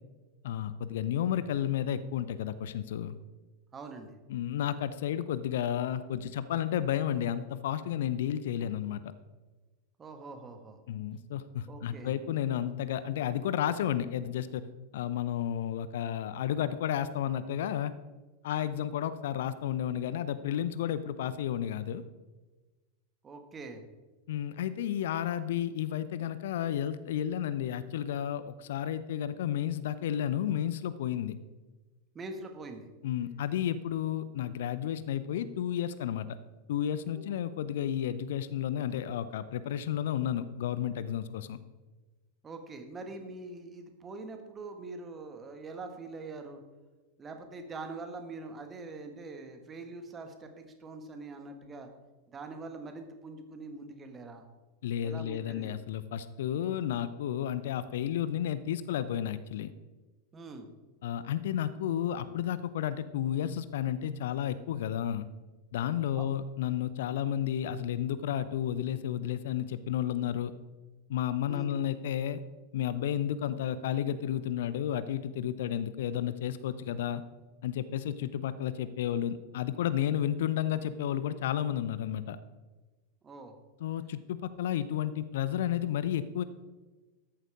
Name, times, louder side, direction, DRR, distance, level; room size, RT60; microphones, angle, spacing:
voice 1, 0.4-3.2 4.3-9.0 10.9-14.6 14.9-17.9 18.4-22.0 24.3-31.4 33.0-36.4 36.7-41.6 54.8-59.7 61.0-65.3 65.7-70.5 71.1-72.4 72.7-77.2 77.6-82.4 83.8-86.4, left 10 dB, 55° left, 14 dB, 0.6 m, -32 dB
voice 2, 3.7-4.2 10.0-10.8 11.7-12.2 23.2-23.8 32.1-32.9 37.1-37.3 42.4-46.6 47.2-51.9 52.3-54.4 55.0-55.7 60.3-60.7 66.1-66.3 71.5-71.7 83.2-83.5, right 3 dB, 20° right, 5 dB, 1.7 m, -44 dB
13.5 x 11.0 x 3.6 m, 1.2 s
figure-of-eight pair, 90°, 0 cm